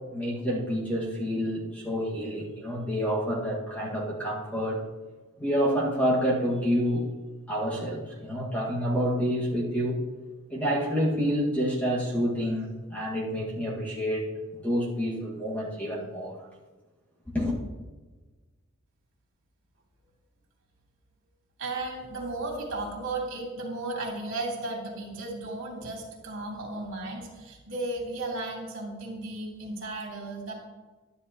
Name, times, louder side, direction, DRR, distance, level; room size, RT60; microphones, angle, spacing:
voice 1, 0.1-4.8 5.4-7.0 7.5-10.0 10.5-16.4 17.3-17.6, equal, 5° left, -5 dB, 1.9 m, -28 dB
voice 2, 21.6-30.5, right 2 dB, 60° right, -3 dB, 2.9 m, -35 dB
12.0 x 10.5 x 3.0 m, 1.3 s
head